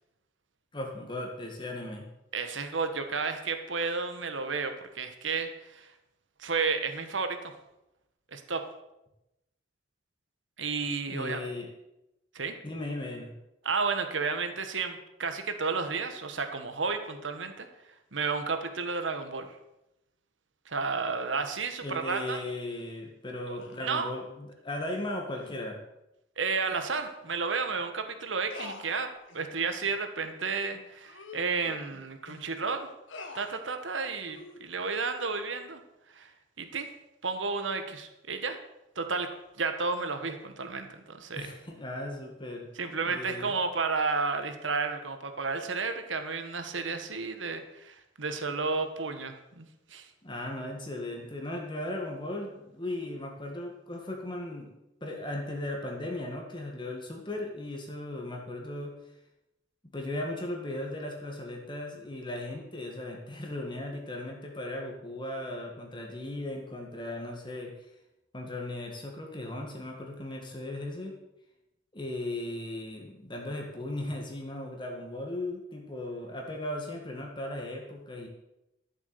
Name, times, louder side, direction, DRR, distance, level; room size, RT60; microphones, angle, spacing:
voice 1, 0.7-2.1 11.1-11.7 12.6-13.3 21.8-25.8 41.3-42.7 43.0-43.5 50.2-54.7 55.0-58.9 59.9-67.7 68.3-71.2 71.9-78.3, left 1 dB, 25° left, 1 dB, 1.7 m, -37 dB
voice 2, 2.3-5.9 6.4-7.5 8.3-8.6 10.6-11.4 12.3-12.6 13.6-17.7 18.1-19.6 20.6-22.4 23.5-24.1 26.4-29.1 29.3-32.9 33.3-35.8 36.1-36.3 36.6-36.9 37.2-38.6 38.9-39.3 39.6-41.5 42.7-50.1, right 4 dB, 80° right, 7 dB, 1.4 m, -32 dB
sound 1, 23.6-23.9 24.7-25.0 25.4-25.6 26.7-26.8 27.2-27.4 27.7-27.8 28.5-29.4 29.8-30.0 30.4-30.5 31.0-32.5 33.1-33.6 34.2-34.6, left 3 dB, 85° left, 1.7 m, -46 dB
13.0 x 7.3 x 6.9 m, 0.90 s
head